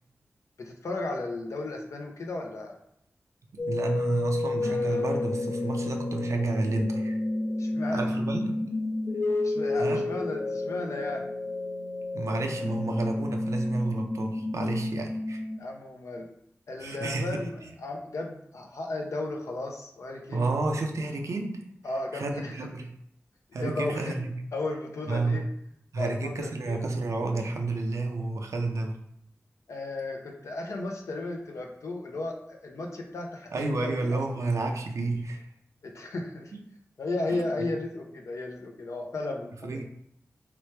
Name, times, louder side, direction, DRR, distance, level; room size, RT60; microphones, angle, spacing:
voice 1, 0.6-2.8 7.6-8.1 9.4-11.3 15.6-16.3 16.7-17.5 17.8-20.5 21.8-22.5 23.6-24.2 24.5-25.4 26.0-26.9 29.7-34.2 35.8-36.5 37.0-39.8, left 2 dB, 90° left, 1 dB, 0.6 m, -34 dB
sound 1, 3.6-15.6, left 2 dB, 45° left, 0.4 m, -30 dB
voice 2, 3.7-7.2 7.9-8.6 9.8-10.1 12.1-15.4 16.8-17.7 20.3-21.6 22.1-22.9 23.5-24.3 25.1-25.4 25.9-29.0 33.5-35.5 36.5-36.6 37.3-37.4 39.6-39.8, right 3 dB, 85° right, 3 dB, 0.5 m, -30 dB
3.3 x 3.0 x 3.2 m, 0.75 s
wide cardioid pair, 65°, 5 cm